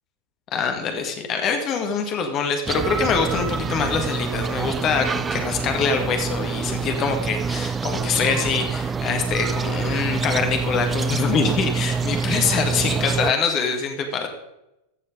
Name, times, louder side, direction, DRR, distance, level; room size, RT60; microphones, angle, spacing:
voice 1, 0.5-14.3, left 5 dB, 35° left, 5 dB, 1.9 m, -24 dB
sound 1, 2.6-13.3, right 5 dB, 15° right, 0.3 m, -26 dB
15.0 x 6.5 x 5.1 m, 0.91 s
figure-of-eight pair, 90°, 0 cm